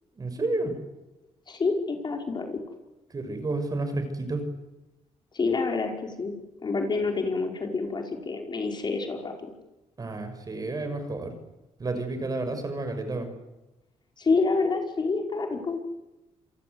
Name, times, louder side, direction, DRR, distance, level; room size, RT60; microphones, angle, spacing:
voice 1, 0.2-0.8 3.1-4.5 10.0-11.3 11.8-13.3, right 2 dB, 30° right, 8 dB, 6.2 m, -30 dB
voice 2, 1.5-2.6 5.3-6.4 6.6-9.3 14.2-15.8, left 4 dB, 40° left, 3 dB, 5.3 m, -27 dB
27.5 x 23.5 x 8.1 m, 1.0 s
cardioid pair, 110°, 12 cm